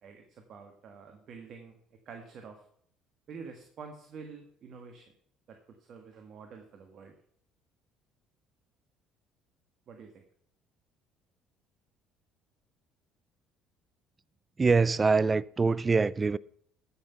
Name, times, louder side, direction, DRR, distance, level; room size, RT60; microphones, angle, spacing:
voice 1, 0.0-2.6 3.3-5.1 5.5-7.1 9.9-10.2, right 5 dB, 55° right, 1.6 m, -48 dB
voice 2, 14.6-16.4, right 4 dB, 25° right, 0.4 m, -24 dB
13.5 x 5.8 x 5.7 m
supercardioid pair, 80°, 0 cm